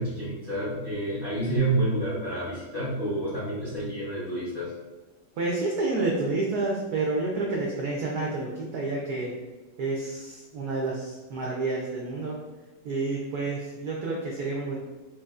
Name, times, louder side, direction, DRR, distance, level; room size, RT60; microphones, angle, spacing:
voice 1, 0.0-4.7, right 2 dB, 40° left, -9 dB, 0.7 m, -29 dB
voice 2, 5.4-9.3 9.8-12.4 12.8-14.8, right 3 dB, 85° right, -3 dB, 0.8 m, -29 dB
4.5 x 2.6 x 2.4 m, 1.2 s
omnidirectional pair, 2.4 m